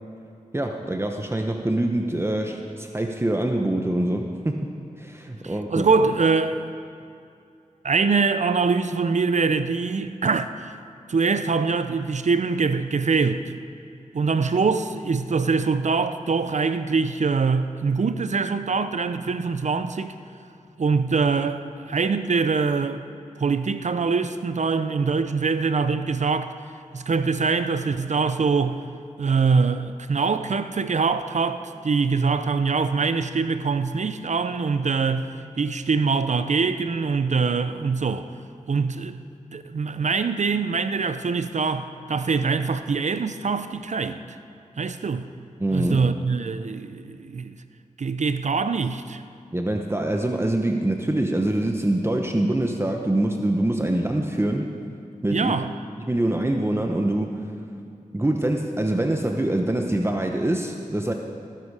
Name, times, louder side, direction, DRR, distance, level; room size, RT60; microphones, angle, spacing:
voice 1, 0.5-4.7 5.0-5.9 45.6-46.0 49.5-54.7 55.2-55.5 56.0-57.4 58.1-61.1, right 1 dB, 20° right, 0.9 m, -24 dB
voice 2, 5.4-6.7 7.8-10.7 11.1-13.5 14.1-20.1 20.8-23.0 23.4-26.5 26.9-28.8 29.2-38.3 38.7-39.2 39.5-44.2 44.8-45.3 45.7-47.6 48.0-49.2 55.3-55.7, right 4 dB, 60° right, 0.6 m, -23 dB
19.0 x 10.0 x 4.9 m
cardioid pair, 45°, 14 cm